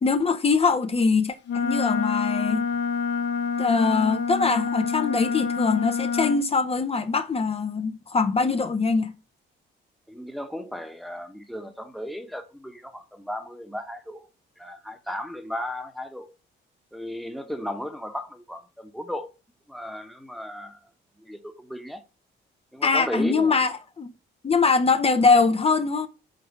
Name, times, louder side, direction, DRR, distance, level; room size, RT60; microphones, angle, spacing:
voice 1, 0.0-2.7 3.6-9.1 22.8-24.1 24.4-26.1, left 4 dB, 30° left, 0.7 m, -22 dB
Wind instrument woodwind instrument, 1.5-6.4, left 5 dB, 65° left, 0.9 m, -27 dB
voice 2, 10.1-14.3 14.6-16.3 16.9-19.3 19.7-20.8 21.2-22.0 22.7-23.6, equal, ahead, 1.1 m, -35 dB
5.3 x 3.8 x 5.2 m
cardioid pair, 90°, 20 cm